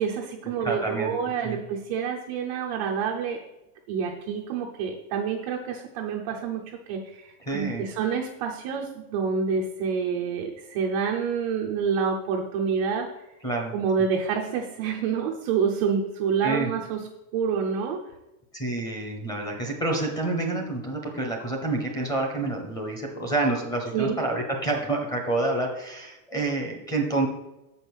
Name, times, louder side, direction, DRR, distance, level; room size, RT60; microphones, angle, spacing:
voice 1, 0.0-3.4 3.9-13.4 13.7-18.0 23.9-24.2, right 6 dB, 25° right, -1 dB, 0.4 m, -28 dB
voice 2, 0.6-1.1 1.4-1.6 7.5-7.8 13.4-13.7 16.4-16.7 18.5-27.3, right 2 dB, 10° left, 2 dB, 0.9 m, -28 dB
7.4 x 5.3 x 6.1 m, 0.94 s
supercardioid pair, 175°, 46 cm